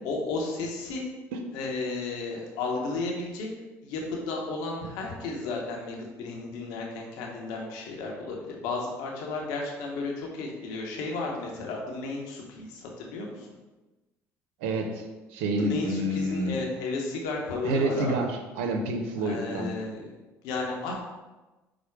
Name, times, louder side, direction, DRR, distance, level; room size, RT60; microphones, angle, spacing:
voice 1, 0.0-1.0 1.5-3.5 3.8-13.5 15.6-18.1 19.2-20.0 20.4-21.0, left 3 dB, 80° left, 0 dB, 0.9 m, -33 dB
voice 2, 14.6-15.0 15.3-16.6 17.6-19.7, right 1 dB, 90° right, 4 dB, 0.5 m, -28 dB
4.8 x 2.0 x 4.5 m, 1.1 s
supercardioid pair, 70°, 7 cm